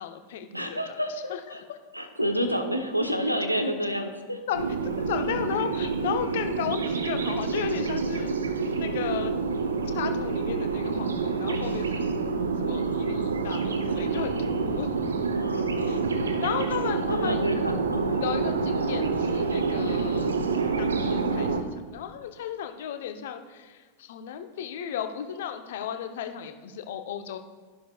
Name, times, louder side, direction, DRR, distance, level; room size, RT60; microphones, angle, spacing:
voice 1, 0.0-1.0 1.3-1.4 4.5-4.6 5.1-8.3 8.8-9.3 9.9-12.1 12.6-14.9 15.9-16.0 16.4-17.5 18.2-20.3 20.8-27.4, left 9 dB, 55° left, 7 dB, 0.8 m, -34 dB
voice 2, 0.5-1.6 1.9-4.4 15.3-16.0 16.9-18.2, equal, 90° right, 5 dB, 1.0 m, -29 dB
sound 1, 4.5-21.6, right 4 dB, 70° right, 0.8 m, -27 dB
12.5 x 11.0 x 2.4 m, 1.4 s
figure-of-eight pair, 90°, 0 cm